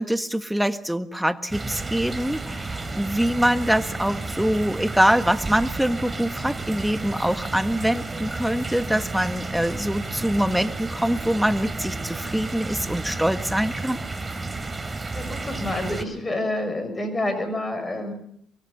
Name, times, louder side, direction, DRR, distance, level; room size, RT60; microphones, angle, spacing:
voice 1, 0.0-14.0, equal, 5° right, 10 dB, 1.5 m, -24 dB
sound 1, 1.5-16.0, right 3 dB, 25° right, 3.4 m, -32 dB
voice 2, 15.0-18.1, left 1 dB, 25° left, 9 dB, 7.0 m, -28 dB
24.5 x 22.5 x 5.7 m, 0.65 s
hypercardioid pair, 55°, 0 cm